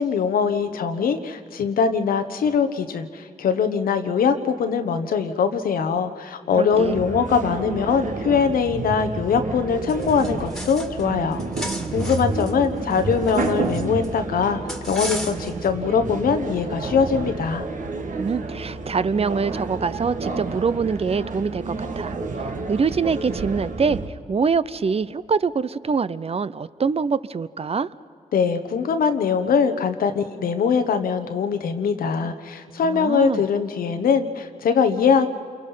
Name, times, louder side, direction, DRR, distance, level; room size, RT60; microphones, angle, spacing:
voice 1, 0.0-14.6 14.9-17.6 28.3-35.3, left 6 dB, 90° left, 8 dB, 1.2 m, -22 dB
voice 2, 6.6-7.0 18.2-22.1 22.7-24.0 24.3-27.9 32.8-33.4, right 5 dB, 45° right, 16 dB, 0.6 m, -24 dB
sound 1, 6.7-24.1, right 3 dB, 65° right, 1.7 m, -30 dB
sound 2, 9.9-11.0 11.3-14.1 14.7-15.7, equal, ahead, 2.1 m, -35 dB
28.0 x 23.5 x 5.6 m, 2.3 s
cardioid pair, 60°, 15 cm